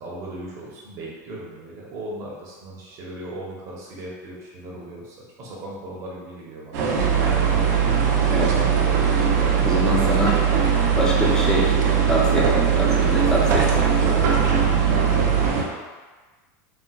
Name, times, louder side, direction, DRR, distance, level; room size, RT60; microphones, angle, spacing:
voice 1, 0.0-7.2, right 1 dB, 35° right, -4 dB, 0.8 m, -38 dB
sound 1, 6.7-15.6, right 3 dB, 65° right, 0.5 m, -23 dB
sound 2, 7.0-15.5, right 10 dB, 90° left, 0.6 m, -22 dB
voice 2, 8.3-8.6 9.6-10.4 10.9-11.7 12.1-14.2, left 1 dB, 5° left, -5 dB, 0.5 m, -25 dB
4.1 x 2.1 x 2.3 m, 1.3 s
supercardioid pair, 160°, 9 cm